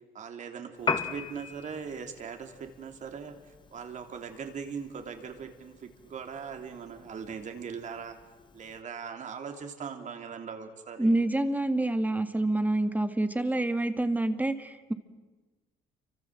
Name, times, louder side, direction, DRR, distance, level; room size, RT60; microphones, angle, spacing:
voice 1, 0.1-8.2 8.5-11.1, right 6 dB, 45° right, 6 dB, 3.5 m, -40 dB
Piano, 0.8-8.8, left 5 dB, 30° left, 1.5 m, -40 dB
voice 2, 11.0-14.9, right 2 dB, 10° right, 9 dB, 1.9 m, -27 dB
30.0 x 25.0 x 7.7 m, 1.2 s
cardioid pair, 110°, 17 cm